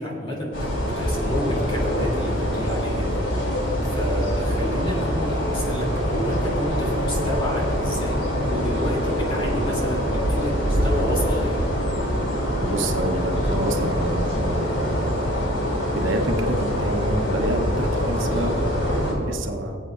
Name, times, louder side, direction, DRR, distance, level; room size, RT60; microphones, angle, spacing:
voice 1, 0.0-3.1 3.4-11.5, equal, 30° left, -4 dB, 2.8 m, -29 dB
sound 1, 0.5-19.1, equal, 80° left, 2.8 m, -24 dB
voice 2, 12.6-15.1 15.9-19.8, right 1 dB, 75° right, 3 dB, 1.0 m, -28 dB
24.0 x 8.1 x 2.5 m, 2.5 s
head